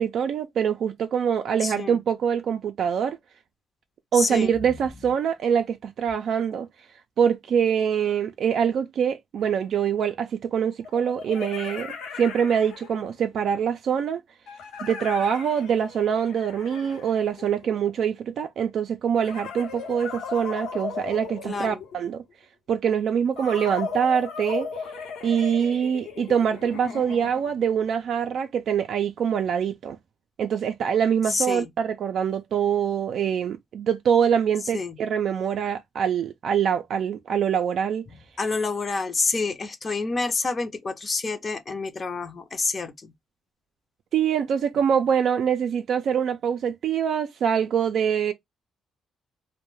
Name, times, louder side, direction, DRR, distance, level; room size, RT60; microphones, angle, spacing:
voice 1, 0.0-3.2 4.1-6.7 7.2-14.2 14.8-22.2 22.7-24.7 25.2-30.0 30.4-38.0 44.1-48.3, right 8 dB, 65° right, 0.3 m, -24 dB
voice 2, 1.6-1.9 4.1-4.5 21.5-21.8 31.3-31.7 34.7-34.9 38.4-43.1, left 3 dB, 35° left, 0.5 m, -28 dB
sound 1, 9.4-9.5 10.8-13.2 14.5-17.9 19.1-22.2 23.4-27.6, left 6 dB, 85° left, 0.8 m, -37 dB
2.2 x 2.1 x 3.0 m
cardioid pair, 90°, 0 cm